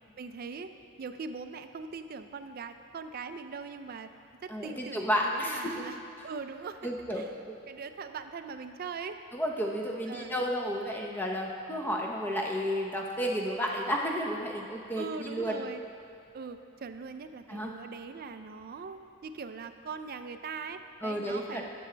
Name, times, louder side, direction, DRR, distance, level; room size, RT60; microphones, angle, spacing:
voice 1, 0.2-0.7 1.0-4.1 4.4-6.0 6.2-7.3 7.7-9.2 10.1-10.3 15.0-15.8 16.3-21.7, right 5 dB, 45° right, 9 dB, 0.4 m, -41 dB
voice 2, 4.5-5.7 6.8-7.6 9.3-15.6 17.5-17.7 21.0-21.6, equal, 10° left, -1 dB, 0.7 m, -32 dB
13.0 x 6.9 x 3.3 m, 2.5 s
head